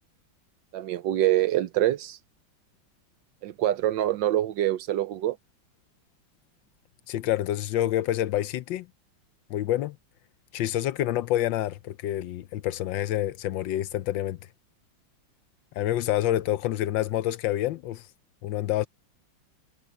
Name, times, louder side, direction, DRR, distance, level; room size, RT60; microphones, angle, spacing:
voice 1, 0.7-2.2 3.4-5.4, right 13 dB, 70° right, 1.3 m, -25 dB
voice 2, 7.1-8.9 9.5-10.0 10.5-14.4 15.8-18.1 18.4-18.9, left 13 dB, 75° left, 1.3 m, -27 dB
omnidirectional pair, 2.2 m